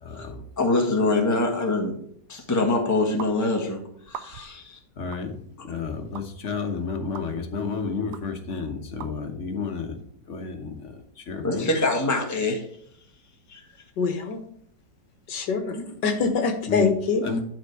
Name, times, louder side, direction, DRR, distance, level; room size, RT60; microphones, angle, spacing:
voice 1, 0.0-0.4 4.9-10.0 10.2-11.7 16.7-16.9 17.2-17.4, left 5 dB, 45° left, 5 dB, 1.4 m, -31 dB
voice 2, 0.6-2.0 2.3-3.8 4.1-4.8 11.4-12.6 13.5-13.6 15.7-15.8, left 2 dB, 10° left, 2 dB, 1.2 m, -24 dB
sound 1, 3.2-3.3 4.1-4.6 5.1-5.3 6.1-6.3 7.1-7.3 8.1-8.2 9.0-9.1, right 9 dB, 75° right, 1.2 m, -38 dB
voice 3, 14.0-14.4 15.3-17.2, left 4 dB, 75° left, 6 dB, 1.7 m, -24 dB
11.0 x 4.5 x 4.7 m, 0.66 s
omnidirectional pair, 1.9 m